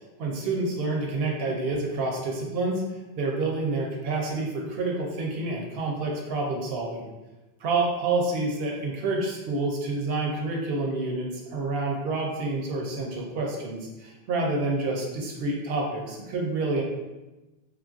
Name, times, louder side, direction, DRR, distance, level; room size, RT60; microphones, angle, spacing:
voice 1, 0.2-2.8 3.1-7.1 7.6-16.8, right 3 dB, 75° right, 0 dB, 0.8 m, -28 dB
3.3 x 2.4 x 2.4 m, 1.1 s
omnidirectional pair, 1.0 m